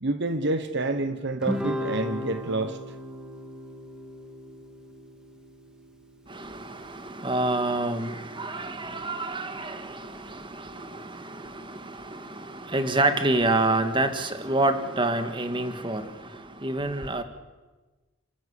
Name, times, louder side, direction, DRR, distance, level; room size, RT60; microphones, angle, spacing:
voice 1, 0.0-2.8, right 2 dB, 55° right, 9 dB, 1.1 m, -28 dB
Guitar, 1.4-6.0, left 1 dB, 5° right, 2.2 m, -35 dB
voice 2, 6.3-16.1 16.6-17.2, right 2 dB, 25° right, 8 dB, 1.8 m, -28 dB
30.0 x 13.5 x 8.4 m, 1.2 s
head